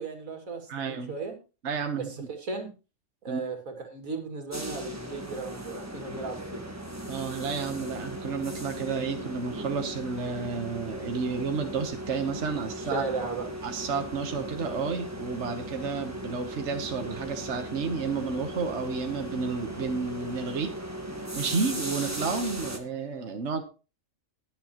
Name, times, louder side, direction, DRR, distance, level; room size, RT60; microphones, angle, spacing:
voice 1, 0.0-1.4 1.9-2.7 3.2-6.6 12.6-13.5 14.3-14.4, right 4 dB, 85° right, 4 dB, 2.7 m, -36 dB
voice 2, 0.7-1.1 1.6-2.3 3.3-3.4 7.1-13.0 13.6-20.7 21.3-23.6, right 5 dB, 60° right, 5 dB, 1.4 m, -31 dB
sound 1, 4.5-22.8, right 1 dB, 10° right, 1.4 m, -37 dB
20.5 x 7.6 x 3.0 m, 0.31 s
omnidirectional pair, 1.4 m